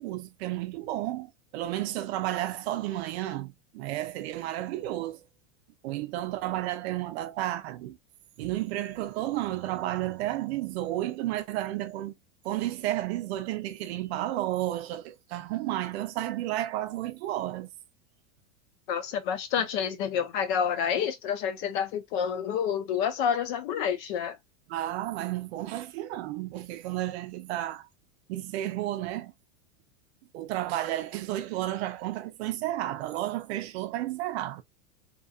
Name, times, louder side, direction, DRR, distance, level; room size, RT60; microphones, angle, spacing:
voice 1, 0.0-5.2 5.8-8.0 8.4-12.1 12.4-17.7 24.7-27.9 28.3-29.3 30.3-34.6, right 14 dB, 55° right, 0.6 m, -32 dB
voice 2, 18.9-24.4, left 8 dB, 40° left, 0.4 m, -28 dB
2.9 x 2.4 x 2.3 m
supercardioid pair, 160°, 39 cm